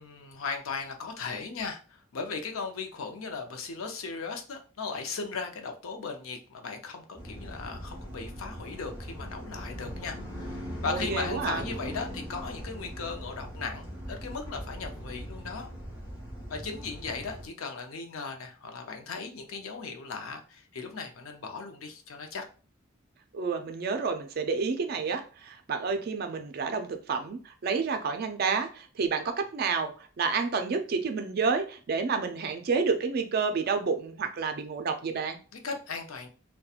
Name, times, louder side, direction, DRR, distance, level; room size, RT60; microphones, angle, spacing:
voice 1, 0.0-15.7 16.5-22.4 35.5-36.3, left 4 dB, 80° left, 0.5 m, -37 dB
sound 1, 7.1-17.5, equal, 15° left, 0.9 m, -40 dB
voice 2, 10.9-11.6 23.3-35.4, right 5 dB, 45° right, 0.3 m, -29 dB
2.8 x 2.2 x 2.3 m
head